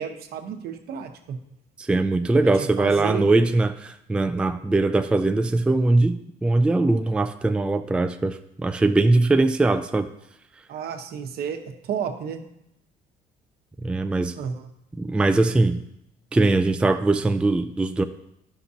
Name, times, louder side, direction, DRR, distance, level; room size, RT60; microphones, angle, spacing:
voice 1, 0.0-1.4 2.5-3.5 10.7-12.4 14.4-14.7, right 7 dB, 70° right, 5 dB, 1.0 m, -32 dB
voice 2, 1.8-10.1 13.8-14.4 15.0-15.8 16.3-18.0, right 2 dB, 5° right, 8 dB, 0.3 m, -21 dB
11.5 x 5.8 x 2.8 m, 0.79 s
cardioid pair, 110°, 17 cm